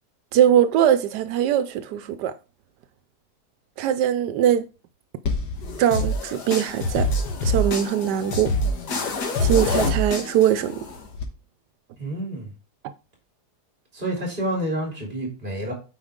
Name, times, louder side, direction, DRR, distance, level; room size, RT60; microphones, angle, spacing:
voice 1, 0.3-2.3 3.8-4.6 5.8-7.1 7.4-8.6 9.4-10.9, right 10 dB, 85° right, 1.2 m, -21 dB
sound 1, 5.2-11.2, left 1 dB, 75° left, 1.9 m, -26 dB
voice 2, 12.0-12.5 13.9-15.7, right 1 dB, 30° right, 3.3 m, -28 dB
8.7 x 5.0 x 3.6 m
omnidirectional pair, 1.8 m